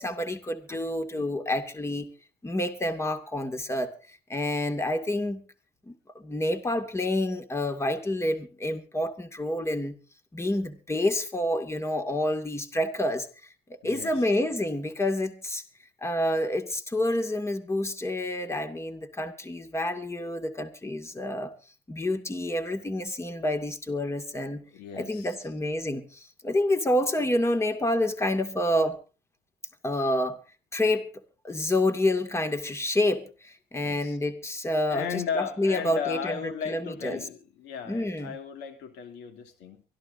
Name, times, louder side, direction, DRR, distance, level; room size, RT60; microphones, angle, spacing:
voice 1, 0.0-2.1 2.4-3.9 4.3-5.4 5.9-10.0 10.3-13.3 13.8-15.6 16.0-21.5 21.9-24.6 25.0-29.0 29.8-30.4 30.7-31.1 31.4-37.3 37.9-38.4, left 1 dB, 15° left, 2.3 m, -28 dB
voice 2, 13.8-14.3 24.5-25.4 33.8-34.2 34.9-39.8, left 7 dB, 85° left, 2.8 m, -36 dB
24.0 x 14.5 x 2.7 m
cardioid pair, 110°, 17 cm